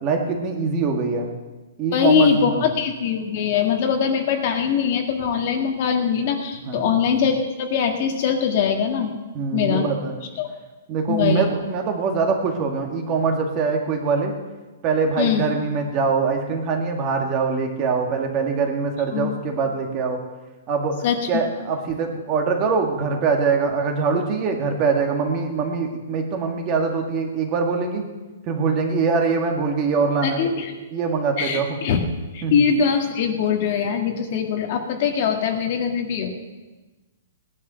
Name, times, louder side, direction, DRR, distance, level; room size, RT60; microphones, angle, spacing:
voice 1, 0.0-1.3 1.8-2.7 6.7-6.9 9.3-10.2 10.9-14.3 14.8-20.2 20.7-21.0 21.3-28.0 28.5-30.6 30.9-31.7 32.4-32.5, right 5 dB, 20° right, 3 dB, 1.9 m, -23 dB
voice 2, 1.9-9.1 9.5-9.9 10.4-10.5 11.1-11.5 15.2-15.5 19.1-19.3 21.0-21.4 30.2-30.7 31.4-32.1 32.3-36.3, left 7 dB, 35° left, 4 dB, 1.8 m, -22 dB
18.5 x 11.0 x 6.9 m, 1.2 s
hypercardioid pair, 175°, 0 cm